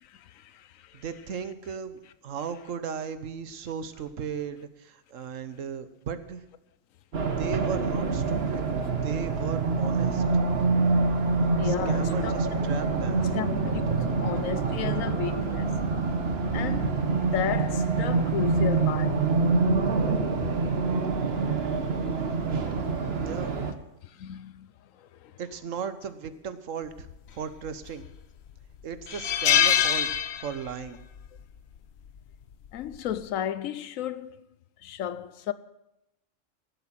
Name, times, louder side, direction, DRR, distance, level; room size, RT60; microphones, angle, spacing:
voice 1, 0.0-1.0 11.6-12.3 13.3-15.8 16.5-19.2 22.9-23.3 24.0-24.7 25.0-25.3 32.7-34.4 34.8-35.5, left 10 dB, 90° left, 1.1 m, -34 dB
voice 2, 1.0-6.4 7.4-10.2 11.6-13.3 23.2-23.7 25.4-27.1 27.3-28.0 28.8-30.1 30.4-31.0, right 7 dB, 75° right, 1.3 m, -36 dB
Race car auto racing, 7.1-23.7, right 4 dB, 50° right, 1.3 m, -26 dB
sound 1, 27.7-28.2 28.6-28.7 29.1-30.9 31.2-31.4 32.6-32.9, left 9 dB, 60° left, 0.9 m, -24 dB
16.0 x 8.1 x 7.4 m
omnidirectional pair, 1.4 m